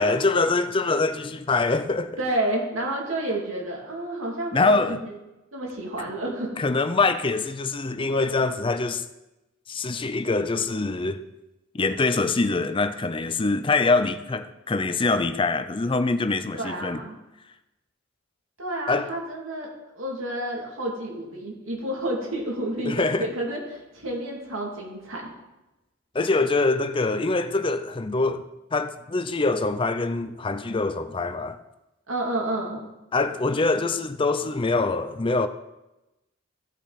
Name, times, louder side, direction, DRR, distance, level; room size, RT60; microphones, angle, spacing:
voice 1, 0.0-2.2 4.5-5.0 6.6-9.0 9.7-11.2 11.7-17.0 18.9-19.1 22.9-23.3 26.1-28.4 28.7-31.6 33.1-35.5, left 3 dB, 25° left, 0.5 m, -24 dB
voice 2, 2.2-5.1 5.5-6.6 16.5-17.2 18.6-19.7 19.9-25.2 32.1-32.8, right 1 dB, 85° right, 2.7 m, -30 dB
15.5 x 6.0 x 4.2 m
head